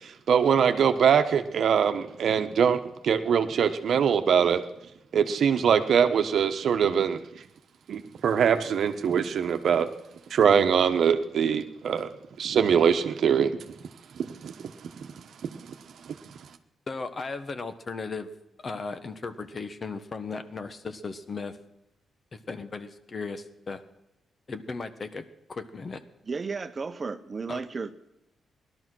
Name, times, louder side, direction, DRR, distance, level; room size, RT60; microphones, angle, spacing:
voice 1, 0.0-4.6 5.1-7.2 7.9-9.9 10.3-12.1 12.4-13.5 14.1-15.1 15.4-15.5 16.0-16.3, right 7 dB, 65° right, 8 dB, 1.1 m, -23 dB
voice 2, 16.9-18.3 18.6-21.6 22.3-23.8 24.5-26.0 27.5-27.6, left 4 dB, 40° left, 10 dB, 1.2 m, -36 dB
voice 3, 26.3-27.9, right 4 dB, 35° right, 11 dB, 0.9 m, -33 dB
18.0 x 12.0 x 6.2 m, 0.90 s
cardioid pair, 90°, 0 cm